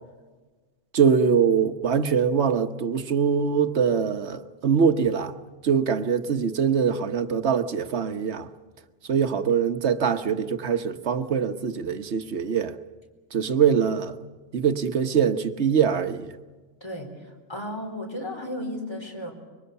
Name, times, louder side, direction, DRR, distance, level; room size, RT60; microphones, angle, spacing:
voice 1, 0.9-5.3 5.6-8.5 9.1-12.7 13.3-14.2 14.5-16.3, right 7 dB, 65° right, 1.3 m, -23 dB
voice 2, 17.5-19.3, left 1 dB, 20° left, 4.3 m, -33 dB
25.0 x 23.5 x 7.0 m
omnidirectional pair, 1.3 m